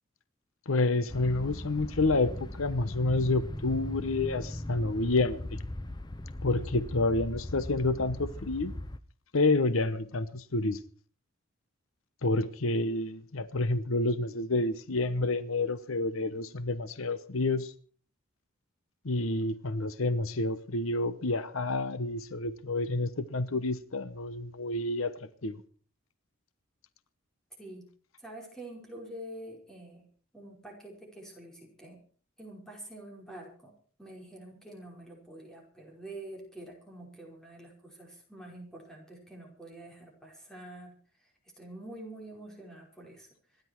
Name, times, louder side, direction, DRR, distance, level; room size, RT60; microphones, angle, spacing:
voice 1, 0.7-5.6 6.4-8.7 9.3-10.8 12.2-17.7 19.0-25.1 25.4-25.6, left 2 dB, 85° left, 1.0 m, -29 dB
sound 1, 1.1-9.0, left 1 dB, 20° left, 0.7 m, -39 dB
voice 2, 27.6-27.9 28.2-30.1 30.3-32.0 32.4-33.7 34.0-43.3, right 1 dB, 5° left, 5.2 m, -47 dB
26.0 x 11.0 x 4.6 m
head